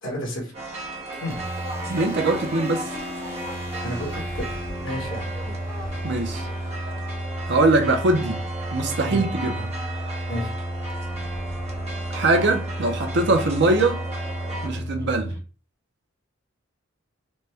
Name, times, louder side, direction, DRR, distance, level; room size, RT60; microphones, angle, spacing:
voice 1, 0.0-0.5 1.2-1.4 3.8-4.4 4.8-5.6 9.0-9.2 10.3-10.5, equal, 65° left, 1.6 m, -31 dB
sound 1, 0.5-14.7, right 2 dB, 30° right, 0.9 m, -36 dB
sound 2, 1.3-15.4, right 1 dB, 15° right, 1.2 m, -32 dB
voice 2, 1.9-2.8 6.0-6.5 7.5-8.4 8.7-9.7 12.1-14.0 14.6-15.3, right 2 dB, 60° right, 0.7 m, -22 dB
4.1 x 2.3 x 3.4 m
head